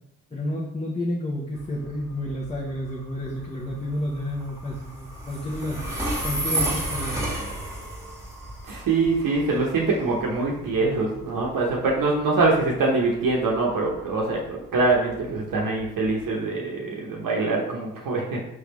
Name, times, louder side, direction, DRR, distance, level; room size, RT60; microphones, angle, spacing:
voice 1, 0.3-5.8 6.2-7.3, left 1 dB, 15° left, -3 dB, 0.8 m, -30 dB
Train, 1.6-16.3, right 1 dB, 10° right, 1.4 m, -33 dB
voice 2, 8.7-18.4, right 3 dB, 65° right, -2 dB, 0.9 m, -24 dB
3.7 x 3.4 x 3.1 m, 0.80 s
supercardioid pair, 45°, 36 cm